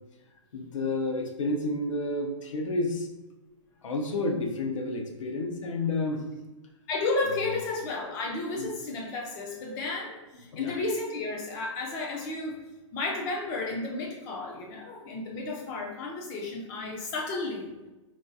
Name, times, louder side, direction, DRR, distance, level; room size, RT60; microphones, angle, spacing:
voice 1, 0.5-3.1 3.8-6.2 8.5-8.7 10.5-10.8, left 2 dB, 75° left, 3 dB, 0.7 m, -30 dB
voice 2, 6.9-12.6 12.9-17.7, left 3 dB, 20° left, 0 dB, 0.4 m, -32 dB
3.9 x 2.3 x 2.6 m, 1.1 s
hypercardioid pair, 155°, 16 cm